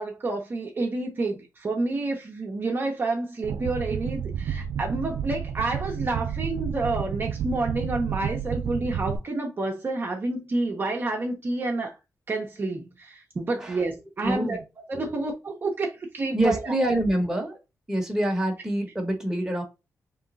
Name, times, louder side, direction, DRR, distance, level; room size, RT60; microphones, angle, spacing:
voice 1, 0.0-11.9 12.3-16.7, right 2 dB, 35° right, 0.9 m, -29 dB
sound 1, 3.4-9.2, right 8 dB, 85° right, 0.4 m, -31 dB
voice 2, 14.2-14.6 14.9-15.1 16.3-17.5 17.9-19.6, right 1 dB, 10° right, 1.2 m, -26 dB
3.6 x 3.1 x 3.9 m
wide cardioid pair, 115°, 6 cm